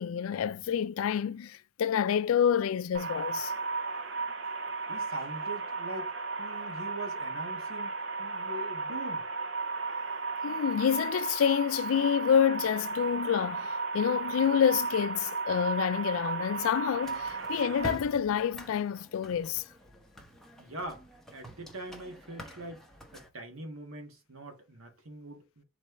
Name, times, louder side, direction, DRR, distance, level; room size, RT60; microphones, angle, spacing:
voice 1, 0.0-3.5 10.4-13.7 13.9-19.6, left 8 dB, 80° left, 0.3 m, -28 dB
sound 1, 2.9-17.9, right 4 dB, 60° right, 0.8 m, -35 dB
voice 2, 4.9-6.1 6.4-9.3 20.6-21.0 21.3-22.8 23.1-25.6, right 1 dB, 80° right, 1.5 m, -43 dB
sound 2, 17.0-23.3, right 1 dB, ahead, 0.7 m, -47 dB
4.2 x 3.2 x 3.2 m
head